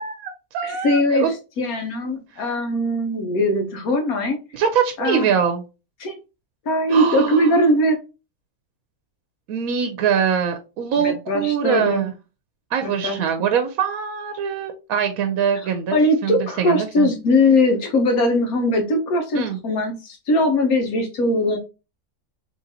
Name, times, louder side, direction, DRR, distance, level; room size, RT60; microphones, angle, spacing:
voice 1, 0.0-1.3 2.4-2.5 4.5-5.6 6.9-7.6 9.5-12.1 12.7-17.1 19.3-19.6, right 7 dB, 80° right, 7 dB, 1.0 m, -23 dB
voice 2, 0.6-4.4 5.0-5.3 6.0-6.1 6.6-8.0 11.0-12.1 12.8-13.2 15.9-21.6, left 1 dB, 80° left, 4 dB, 1.4 m, -20 dB
3.8 x 3.2 x 2.7 m, 0.30 s
omnidirectional pair, 1.5 m